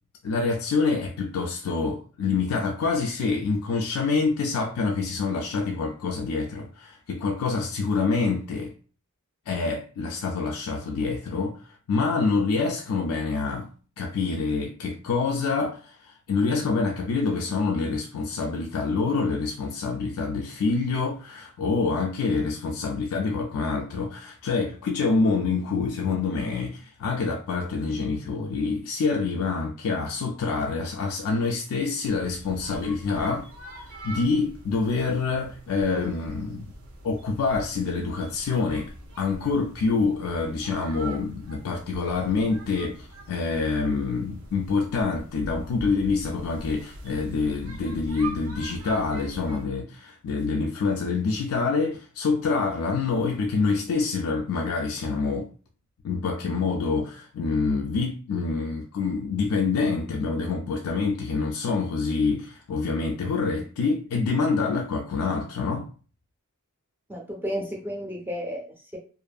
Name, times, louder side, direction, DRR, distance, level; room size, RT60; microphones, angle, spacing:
voice 1, 0.2-8.7 9.5-13.7 14.0-33.5 33.8-36.7 37.0-55.5 56.0-65.9, left 4 dB, 80° left, 0.3 m, -26 dB
sound 1, 32.0-49.6, right 1 dB, 75° right, 0.7 m, -43 dB
voice 2, 67.1-69.0, equal, 10° right, 0.5 m, -33 dB
2.5 x 2.5 x 2.3 m
head